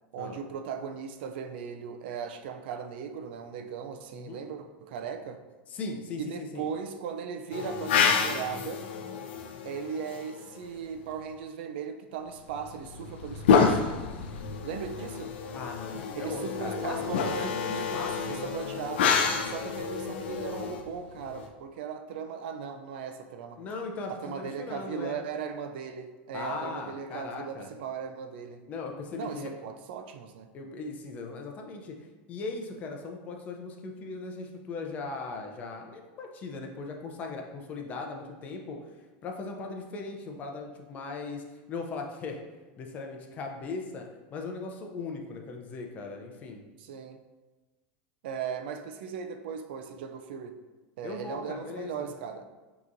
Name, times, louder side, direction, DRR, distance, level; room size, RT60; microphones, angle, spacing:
voice 1, 0.1-5.4 6.2-8.9 9.6-13.9 14.6-15.4 16.1-19.1 19.4-23.6 24.1-28.7 29.1-30.5 46.8-47.2 48.2-50.6 51.0-52.5, right 6 dB, 70° right, 7 dB, 0.4 m, -38 dB
voice 2, 4.1-4.4 5.7-6.7 15.5-18.4 23.6-25.2 26.3-27.7 28.7-29.5 30.5-39.0 39.2-42.4 42.8-46.6 51.0-52.1, left 3 dB, 25° left, 2 dB, 0.5 m, -38 dB
sound 1, 7.5-10.7 12.5-21.5, left 6 dB, 85° left, 0.5 m, -29 dB
6.0 x 2.9 x 2.6 m, 1.2 s
supercardioid pair, 160°, 6 cm